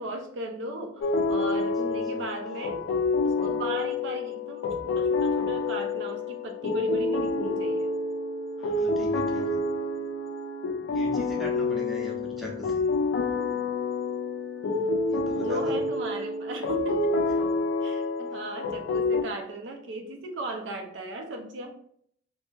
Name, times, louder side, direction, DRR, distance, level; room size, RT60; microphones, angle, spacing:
voice 1, 0.0-2.9 3.2-7.9 15.3-17.3 17.8-21.8, right 1 dB, 65° right, 3 dB, 0.4 m, -36 dB
sound 1, 1.0-19.2, left 3 dB, 80° left, 0.4 m, -28 dB
voice 2, 8.6-9.6 10.9-12.9 15.1-15.8, left 2 dB, ahead, -4 dB, 0.6 m, -39 dB
2.7 x 2.6 x 2.3 m, 0.65 s
head